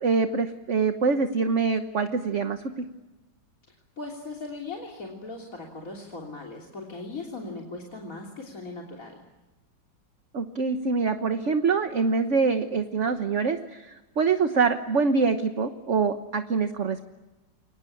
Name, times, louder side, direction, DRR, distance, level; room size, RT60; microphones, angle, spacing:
voice 1, 0.0-2.9 10.3-17.0, right 4 dB, 45° right, 8 dB, 1.4 m, -25 dB
voice 2, 4.0-9.1, left 3 dB, 45° left, 3 dB, 3.6 m, -38 dB
29.5 x 23.5 x 8.6 m, 1.1 s
omnidirectional pair, 2.0 m